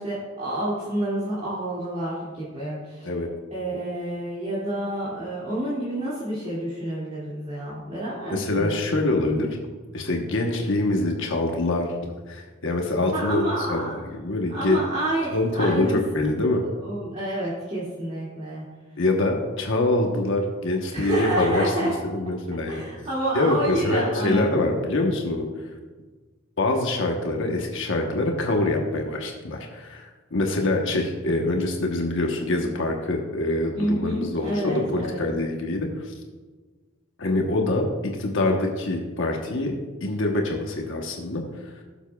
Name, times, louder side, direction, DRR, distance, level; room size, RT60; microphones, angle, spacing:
voice 1, 0.0-3.1 3.5-8.8 13.1-13.9 14.5-16.0 16.8-18.6 20.9-21.9 22.7-24.6 33.7-35.3, right 1 dB, 35° right, -9 dB, 2.3 m, -28 dB
voice 2, 8.3-9.5 9.9-14.8 15.3-16.6 19.0-22.8 23.3-25.4 26.6-36.1 37.2-37.9 38.2-39.7 40.0-41.7, left 2 dB, 65° left, 1 dB, 1.0 m, -25 dB
16.5 x 7.1 x 2.3 m, 1.3 s
head